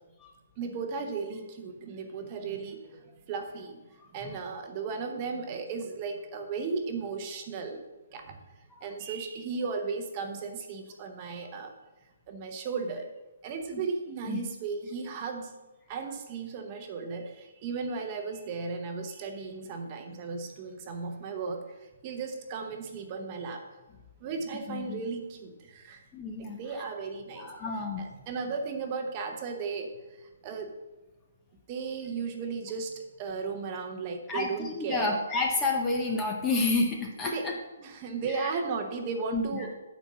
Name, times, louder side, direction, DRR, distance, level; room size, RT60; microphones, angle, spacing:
voice 1, 0.6-3.8 4.1-7.8 8.1-8.4 8.8-11.8 12.3-13.1 13.4-15.6 15.9-23.7 24.2-26.0 26.4-30.7 31.7-35.2 37.2-39.8, right 4 dB, 20° right, 4 dB, 0.8 m, -35 dB
voice 2, 24.7-25.0 26.1-26.6 27.4-28.0 34.3-37.5 38.4-38.5 39.3-39.4, left 3 dB, 10° left, 1 dB, 0.6 m, -29 dB
9.3 x 4.3 x 7.4 m, 1.1 s
hypercardioid pair, 175°, 0 cm